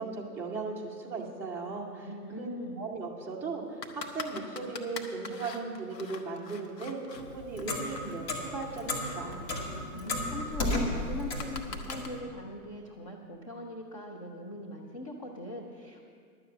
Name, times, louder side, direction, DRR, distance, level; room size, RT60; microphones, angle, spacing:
voice 1, 0.0-2.1 2.4-3.6 3.9-9.4, right 4 dB, 5° right, -5 dB, 0.7 m, -37 dB
voice 2, 2.0-2.9 9.9-16.1, left 1 dB, 20° left, 0 dB, 0.4 m, -41 dB
sound 1, 3.8-7.2 7.6-12.1, left 5 dB, 75° left, 1.3 m, -44 dB
Clock, 7.1-12.1, left 2 dB, 40° left, 2.0 m, -34 dB
11.5 x 7.5 x 7.7 m, 2.2 s
hypercardioid pair, 140°, 49 cm